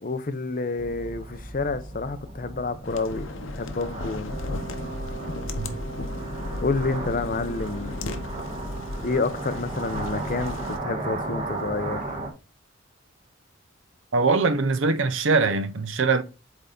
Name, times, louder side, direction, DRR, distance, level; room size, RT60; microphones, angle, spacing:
voice 1, 0.0-3.3 3.6-4.4 6.6-8.2 9.0-12.2, left 3 dB, 40° left, 0.6 m, -29 dB
sound 1, 0.8-12.3, right 2 dB, 30° right, 1.4 m, -36 dB
sound 2, 2.8-10.8, left 2 dB, 75° left, 0.8 m, -35 dB
Wind instrument woodwind instrument, 4.3-12.3, right 5 dB, 45° right, 1.0 m, -42 dB
voice 2, 14.1-16.2, right 4 dB, 70° right, 0.6 m, -22 dB
8.1 x 3.5 x 3.9 m
head